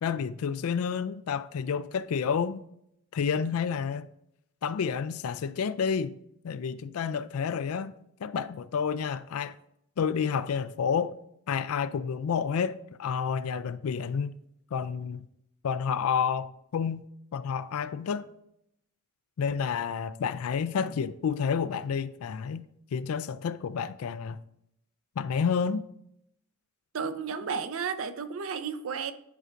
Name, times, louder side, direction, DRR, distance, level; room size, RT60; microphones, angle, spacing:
voice 1, 0.0-2.6 3.1-4.1 4.6-6.2 6.4-7.9 8.2-9.6 10.0-11.2 11.5-14.4 14.7-15.2 15.6-17.0 17.3-18.3 19.4-24.4 25.2-25.8, left 6 dB, 80° left, 0.4 m, -30 dB
voice 2, 26.9-29.1, right 6 dB, 65° right, 0.5 m, -33 dB
10.5 x 4.4 x 2.5 m
head